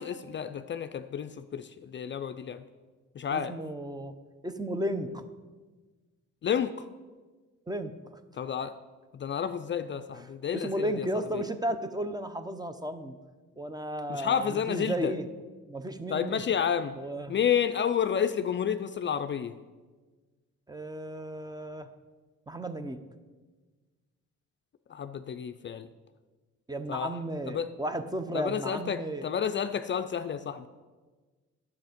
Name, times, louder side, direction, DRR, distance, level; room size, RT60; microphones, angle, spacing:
voice 1, 0.0-2.6 3.2-3.5 6.4-6.9 8.3-8.7 9.1-11.1 11.3-11.4 14.1-15.1 16.1-16.9 17.3-19.5 24.9-25.9 26.9-27.2 27.5-27.7 28.3-30.7, left 8 dB, 40° left, 10 dB, 0.4 m, -30 dB
voice 2, 3.3-4.1 4.4-5.2 7.7-7.9 10.5-13.2 13.6-15.3 15.7-16.4 17.0-17.4 20.7-21.9 22.5-23.0 26.7-29.3, right 1 dB, 15° right, 10 dB, 0.6 m, -34 dB
10.5 x 7.0 x 5.1 m, 1.3 s
cardioid pair, 90°, 30 cm